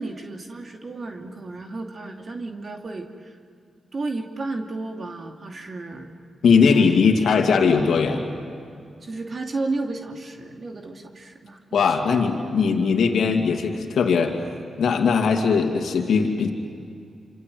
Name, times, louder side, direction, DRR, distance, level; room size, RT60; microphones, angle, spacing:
voice 1, 0.0-3.4 3.9-6.1 6.5-7.0 9.0-12.0, right 3 dB, 50° right, 3 dB, 2.6 m, -33 dB
voice 2, 6.4-8.2 11.7-14.4 14.8-16.5, left 5 dB, 75° left, 2 dB, 2.5 m, -19 dB
27.0 x 26.5 x 7.8 m, 2.4 s
supercardioid pair, 40°, 0 cm